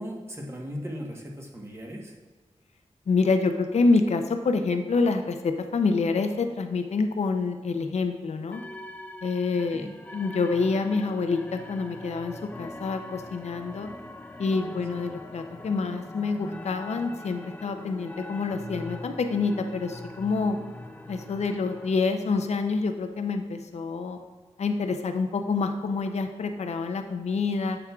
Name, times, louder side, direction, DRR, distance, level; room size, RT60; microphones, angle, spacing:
voice 1, 0.0-2.1 9.7-9.9, equal, 25° right, -1 dB, 1.1 m, -37 dB
voice 2, 3.1-8.6 9.2-9.9 10.1-13.9 14.4-20.6 21.1-24.2 24.6-27.8, left 4 dB, 75° left, 7 dB, 0.5 m, -27 dB
sound 1, 8.5-21.9, left 1 dB, 15° left, 0.4 m, -42 dB
8.4 x 6.9 x 2.3 m, 1.3 s
wide cardioid pair, 100°, 11 cm